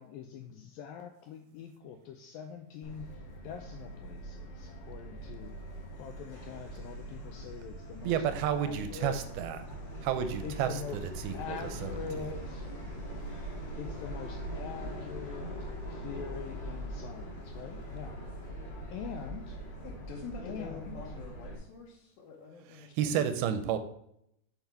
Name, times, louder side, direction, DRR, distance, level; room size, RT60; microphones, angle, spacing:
voice 1, 0.0-3.1 3.4-5.5 5.9-8.2 8.5-9.2 10.4-11.0 11.3-12.7 13.7-15.5 15.8-18.2 18.9-19.6 20.4-21.0, left 8 dB, 90° left, 5 dB, 2.1 m, -43 dB
Subway metro underground, 2.8-21.6, right 1 dB, 30° left, 2.1 m, -42 dB
voice 2, 8.0-9.6 10.0-10.7 11.2-12.0 23.0-23.8, right 9 dB, 80° right, 9 dB, 2.4 m, -31 dB
voice 3, 19.8-23.3, left 4 dB, 75° left, -3 dB, 2.7 m, -46 dB
7.1 x 5.8 x 4.4 m, 0.75 s
omnidirectional pair, 4.7 m